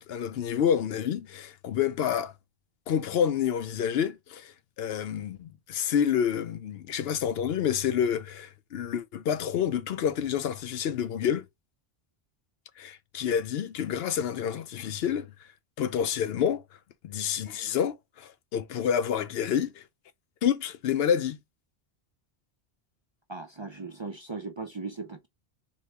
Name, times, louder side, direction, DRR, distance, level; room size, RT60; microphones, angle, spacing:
voice 1, 0.0-2.3 2.9-11.5 12.8-15.3 15.8-16.6 17.0-19.8 20.4-21.4, left 8 dB, 70° left, 0.8 m, -28 dB
voice 2, 23.3-25.3, right 3 dB, 35° right, 0.5 m, -38 dB
4.1 x 3.1 x 3.3 m
omnidirectional pair, 1.1 m